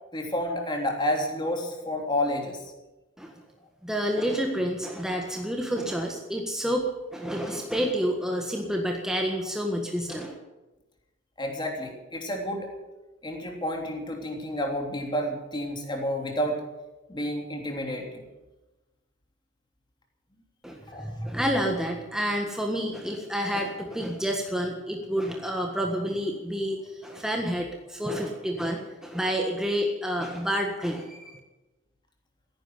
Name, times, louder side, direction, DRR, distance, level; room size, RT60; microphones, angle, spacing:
voice 1, 0.1-2.6 11.4-12.7 13.2-16.6 17.1-18.2 20.9-21.1, left 1 dB, 25° left, 1 dB, 3.3 m, -30 dB
voice 2, 3.8-6.8 7.1-10.3 20.6-31.4, equal, 5° right, 1 dB, 1.5 m, -29 dB
16.0 x 10.5 x 7.9 m, 1.1 s
head